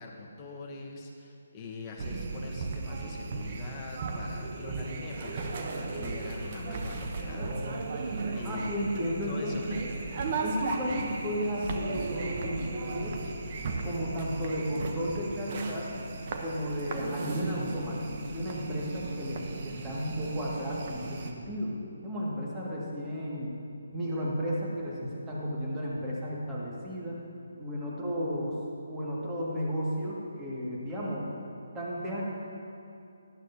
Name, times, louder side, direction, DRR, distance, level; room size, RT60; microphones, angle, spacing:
voice 1, 0.0-8.7 9.0-10.2, left 3 dB, 20° left, -1 dB, 1.3 m, -42 dB
sound 1, 2.0-21.3, right 3 dB, 40° right, 0.9 m, -36 dB
voice 2, 8.4-9.8 10.4-13.2 13.8-15.9 16.4-21.7 22.0-23.5 23.9-27.2 27.6-28.6 28.9-31.3 31.7-32.2, equal, 15° right, -6 dB, 2.1 m, -33 dB
13.5 x 11.5 x 2.8 m, 2.5 s
figure-of-eight pair, 145°, 0 cm